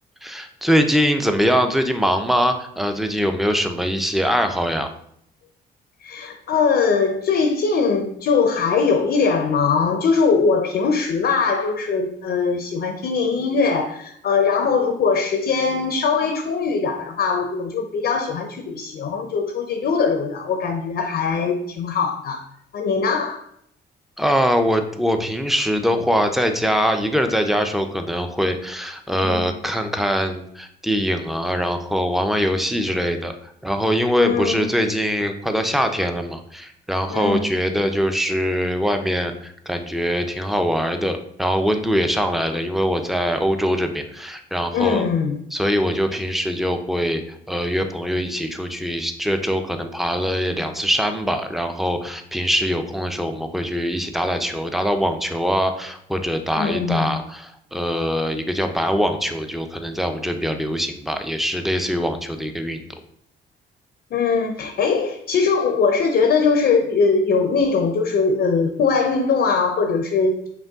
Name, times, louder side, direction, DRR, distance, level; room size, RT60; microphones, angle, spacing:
voice 1, 0.2-4.9 24.2-45.1 45.5-62.9, equal, ahead, 6 dB, 0.5 m, -22 dB
voice 2, 6.0-22.4 22.7-23.4 29.1-29.5 34.2-34.7 37.1-37.4 44.7-45.4 56.6-57.2 64.1-70.5, left 5 dB, 55° left, 5 dB, 0.6 m, -21 dB
5.3 x 2.2 x 3.5 m, 0.70 s
cardioid pair, 90°, 20 cm